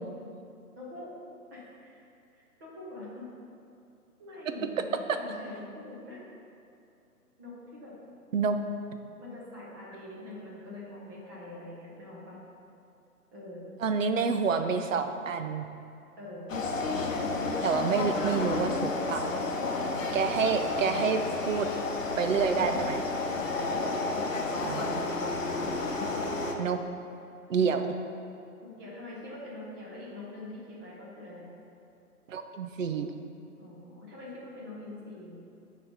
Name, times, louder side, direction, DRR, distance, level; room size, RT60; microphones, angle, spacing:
voice 1, 0.7-1.1 1.5-2.0 2.6-3.3 4.2-6.2 7.4-7.9 9.2-12.4 13.3-13.7 16.2-16.5 19.7-20.0 23.2-24.4 24.7-25.5 27.5-27.7 28.6-31.5 33.6-35.4, left 2 dB, 15° right, -7 dB, 1.0 m, -44 dB
voice 2, 13.8-15.6 17.6-19.3 20.1-21.7 22.2-23.0 24.6-24.9 26.6-26.8 27.5-28.0 32.3-33.1, right 5 dB, 55° right, 7 dB, 0.6 m, -28 dB
sound 1, 16.5-26.5, left 3 dB, 55° left, 0.8 m, -31 dB
8.0 x 3.3 x 5.5 m, 2.6 s
figure-of-eight pair, 145°, 46 cm